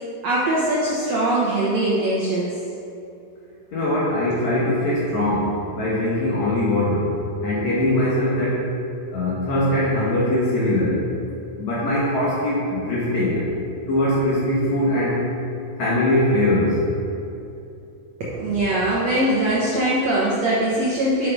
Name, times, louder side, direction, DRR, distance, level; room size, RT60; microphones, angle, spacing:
voice 1, 0.2-2.5 18.2-21.3, right 1 dB, 70° right, -6 dB, 1.6 m, -21 dB
voice 2, 3.7-7.2 7.4-8.7 9.1-11.0 11.6-13.5 13.9-15.2 15.8-16.8, left 1 dB, 60° left, -7 dB, 2.0 m, -21 dB
6.6 x 6.3 x 5.3 m, 2.7 s
omnidirectional pair, 4.6 m